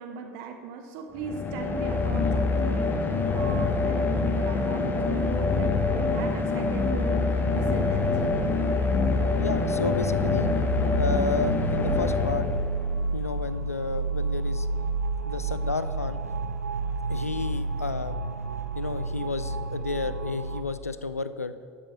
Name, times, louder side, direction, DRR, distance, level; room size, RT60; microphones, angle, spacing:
voice 1, 0.0-8.5, right 5 dB, 55° right, 5 dB, 0.9 m, -39 dB
sound 1, 1.2-13.0, left 3 dB, 25° left, 1.1 m, -25 dB
sound 2, 7.4-20.6, right 3 dB, 90° right, 0.5 m, -31 dB
voice 2, 9.4-10.5 10.9-12.5 13.1-14.7 15.2-16.2 17.1-18.2 18.7-21.5, left 3 dB, 90° left, 13 dB, 0.4 m, -31 dB
12.0 x 6.2 x 5.4 m, 2.1 s
figure-of-eight pair, 70°, 8 cm